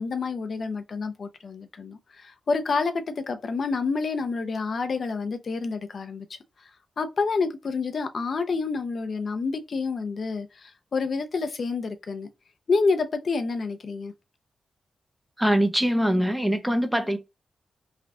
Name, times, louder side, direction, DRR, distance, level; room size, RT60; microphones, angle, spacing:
voice 1, 0.0-6.3 7.0-12.3 12.7-14.1, left 4 dB, 60° left, 0.6 m, -28 dB
voice 2, 15.4-17.2, equal, 5° right, 0.6 m, -23 dB
3.3 x 2.4 x 2.5 m
cardioid pair, 90°, 0 cm